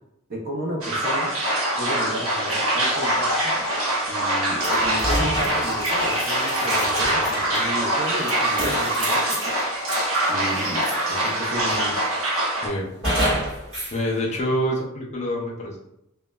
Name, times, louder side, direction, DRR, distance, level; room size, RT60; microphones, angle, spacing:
voice 1, 0.3-1.3 1.8-3.6 4.1-9.6 10.3-12.0, right 1 dB, 45° right, 0 dB, 0.4 m, -33 dB
sound 1, 0.8-12.7, right 1 dB, 90° right, 0.8 m, -24 dB
sound 2, 1.6-11.6, left 3 dB, 90° left, 0.6 m, -40 dB
sound 3, 4.6-11.3 11.7-12.3 13.0-14.0, equal, 25° right, 1.5 m, -29 dB
voice 2, 13.9-15.8, equal, 35° left, -2 dB, 0.5 m, -26 dB
2.9 x 2.1 x 2.2 m, 0.83 s
head